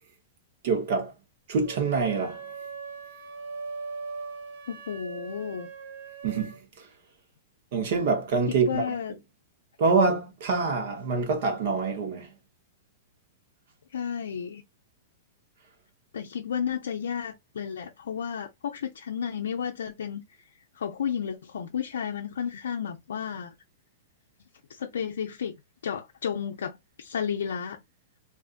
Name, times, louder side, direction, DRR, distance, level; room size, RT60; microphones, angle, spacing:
voice 1, 0.6-1.1 1.5-2.4 6.2-6.9 7.7-8.9 9.8-12.3, right 4 dB, 60° right, 1.0 m, -26 dB
sound 1, 1.6-6.6, right 5 dB, 85° right, 0.9 m, -40 dB
voice 2, 4.7-5.7 8.6-9.1 13.9-14.6 16.1-20.2 20.8-23.5 24.7-25.6 25.8-27.8, left 7 dB, 85° left, 0.4 m, -32 dB
2.6 x 2.4 x 2.4 m
hypercardioid pair, 135°, 0 cm